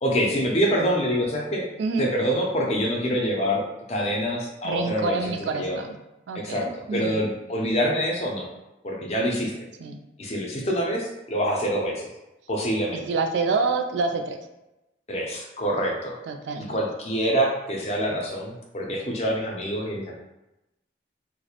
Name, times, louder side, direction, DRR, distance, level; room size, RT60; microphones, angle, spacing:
voice 1, 0.0-1.6 2.0-3.6 3.9-5.8 6.3-8.5 8.8-9.5 10.2-12.1 12.5-13.0 15.1-16.1 16.7-20.1, equal, 35° left, -1 dB, 0.4 m, -26 dB
voice 2, 4.6-5.9 6.3-7.3 9.8-10.0 12.9-14.4 16.3-16.8, right 4 dB, 75° right, 5 dB, 0.3 m, -27 dB
2.4 x 2.0 x 2.8 m, 0.95 s
head